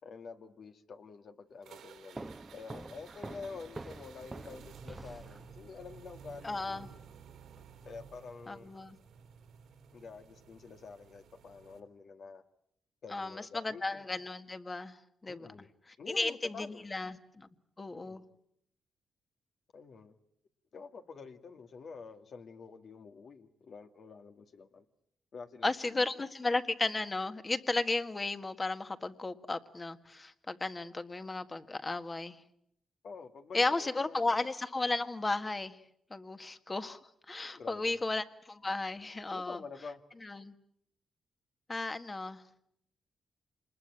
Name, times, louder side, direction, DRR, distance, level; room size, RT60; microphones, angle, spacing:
voice 1, 0.0-6.9 7.6-8.7 9.9-12.4 13.0-14.1 15.3-15.7 16.0-16.8 17.9-18.3 19.7-20.1 20.7-24.9 25.3-26.0 33.0-34.4 37.6-38.0 39.3-40.0, left 5 dB, 60° left, 6 dB, 2.0 m, -48 dB
sound 1, 1.6-11.8, right 7 dB, 80° right, 3.4 m, -54 dB
sound 2, 2.1-5.8, right 2 dB, 25° right, 1.1 m, -46 dB
voice 2, 6.4-6.9 8.5-9.0 13.1-15.0 15.2-15.5 16.1-17.5 17.8-18.2 25.6-32.4 33.5-35.8 36.1-37.0 37.3-39.6 40.2-40.5 41.7-42.4, left 3 dB, 25° left, 9 dB, 1.7 m, -34 dB
26.5 x 20.5 x 9.0 m, 0.71 s
cardioid pair, 75°, 0 cm